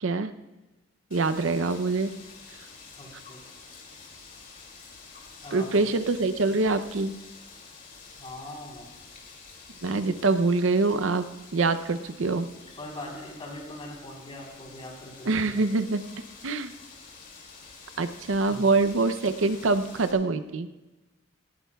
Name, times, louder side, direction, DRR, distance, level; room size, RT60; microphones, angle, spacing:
voice 1, 0.0-0.3 1.1-2.1 5.5-7.1 9.8-11.3 11.5-12.5 15.3-16.0 16.4-16.7 18.0-20.7, right 3 dB, 80° right, 11 dB, 0.6 m, -24 dB
Wind, 1.1-20.1, left 4 dB, 45° left, 2.5 m, -48 dB
voice 2, 3.0-3.4 5.4-5.9 8.2-8.9 12.8-15.5 18.5-18.6, left 1 dB, 30° left, -2 dB, 3.6 m, -41 dB
18.0 x 16.5 x 2.3 m, 1.1 s
head